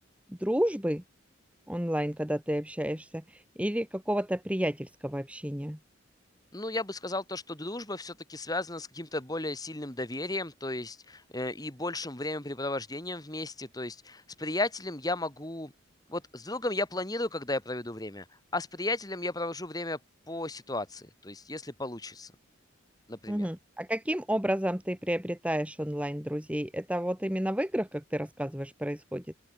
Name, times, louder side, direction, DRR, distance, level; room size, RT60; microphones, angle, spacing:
voice 1, 0.3-1.0 1.7-5.8 23.3-29.2, equal, 5° right, 1.4 m, -31 dB
voice 2, 6.5-15.7 16.1-18.2 18.5-20.0 20.3-22.3 23.1-23.5, left 2 dB, 20° left, 2.5 m, -34 dB
open air
head